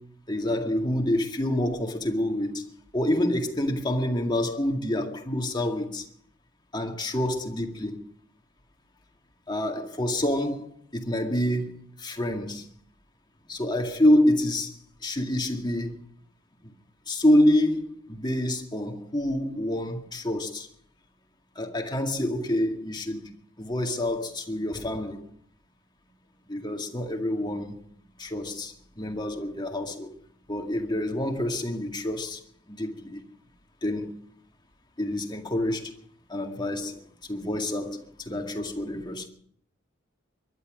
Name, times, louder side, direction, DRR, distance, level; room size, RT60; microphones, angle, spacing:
voice 1, 0.3-6.1 6.7-8.0 9.5-12.6 13.5-14.8 15.0-15.9 16.6-16.7 17.1-20.7 21.6-23.3 23.6-25.3 26.5-27.8 28.2-30.1 30.5-32.4 32.7-33.2 33.8-34.1 35.0-35.9 36.3-39.3, left 1 dB, 20° left, 2.0 m, -27 dB
23.0 x 11.5 x 5.1 m
head